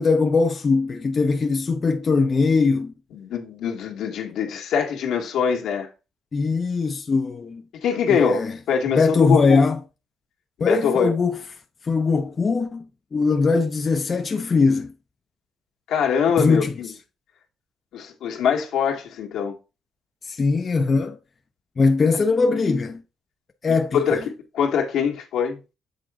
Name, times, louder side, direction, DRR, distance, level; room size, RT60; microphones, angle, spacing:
voice 1, 0.0-2.9 6.3-7.6 8.1-8.6 8.9-9.8 10.6-11.4 11.8-12.8 13.1-14.9 16.4-16.7 20.3-21.2 21.8-23.0 23.6-24.2, left 4 dB, 40° left, 0.6 m, -21 dB
voice 2, 3.1-5.9 7.7-9.6 10.6-11.1 15.9-16.9 17.9-19.5 23.9-24.2 24.5-25.6, left 7 dB, 80° left, 1.6 m, -23 dB
8.0 x 3.8 x 3.7 m
cardioid pair, 90°, 0 cm